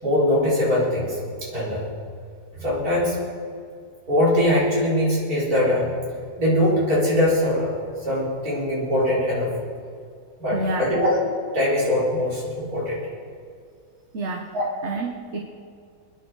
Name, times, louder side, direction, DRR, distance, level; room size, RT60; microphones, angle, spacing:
voice 1, 0.0-1.8 2.6-3.2 4.1-5.9 6.4-9.5 10.4-13.0 14.5-14.6, left 1 dB, 80° right, -6 dB, 5.0 m, -22 dB
voice 2, 10.5-10.9 14.1-14.6 14.8-15.4, right 2 dB, 50° right, 3 dB, 1.3 m, -28 dB
24.5 x 10.0 x 4.8 m, 2.3 s
omnidirectional pair, 1.6 m